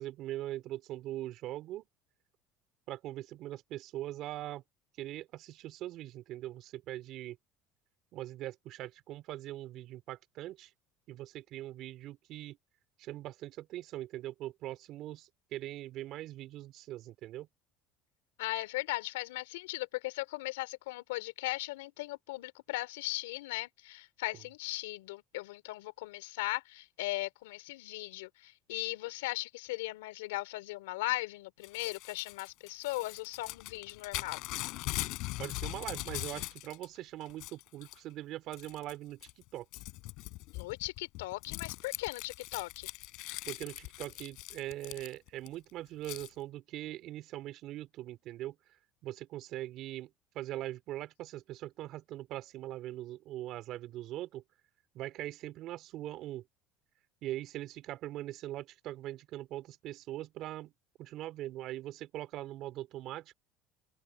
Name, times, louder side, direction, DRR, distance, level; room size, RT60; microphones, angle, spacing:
voice 1, 0.0-1.9 2.9-4.6 5.0-7.4 8.1-10.7 11.1-12.6 13.0-17.5 35.4-39.7 43.5-48.6 49.0-54.4 54.9-56.4 57.2-60.7 61.0-63.3, right 14 dB, 60° right, 3.4 m, -41 dB
voice 2, 18.4-34.4 40.5-42.9, left 20 dB, 90° left, 3.3 m, -38 dB
Crumpling crinkling / Tearing, 31.6-36.9 37.2-38.0 38.5-38.9 39.2-45.5 46.0-46.3, left 22 dB, 70° left, 4.1 m, -41 dB
open air
supercardioid pair, 90°, 0 cm